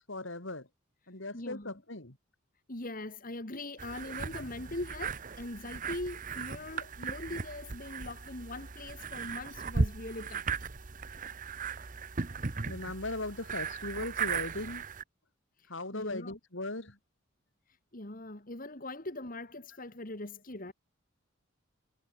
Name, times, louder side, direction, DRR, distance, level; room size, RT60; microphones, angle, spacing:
voice 1, 0.1-0.7 1.1-2.2 4.3-4.5 12.6-14.8 15.7-17.0, left 2 dB, 60° left, 3.3 m, -38 dB
voice 2, 1.3-1.8 2.7-10.5 11.7-11.9 15.6-16.4 17.9-20.7, left 2 dB, 40° left, 2.4 m, -41 dB
sound 1, 3.8-15.0, right 4 dB, 40° right, 0.9 m, -37 dB
head